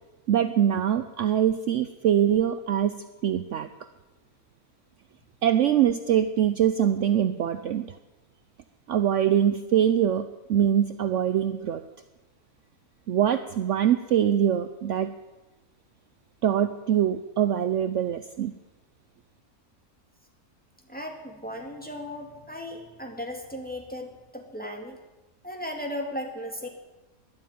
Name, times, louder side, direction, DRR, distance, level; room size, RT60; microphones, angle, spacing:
voice 1, 0.3-3.7 5.4-8.0 8.9-11.8 13.1-15.1 16.4-18.5, right 10 dB, 65° right, 11 dB, 0.9 m, -23 dB
voice 2, 20.9-25.0 25.4-26.7, left 1 dB, 5° left, 2 dB, 2.3 m, -36 dB
13.0 x 11.5 x 9.2 m, 1.1 s
omnidirectional pair, 1.5 m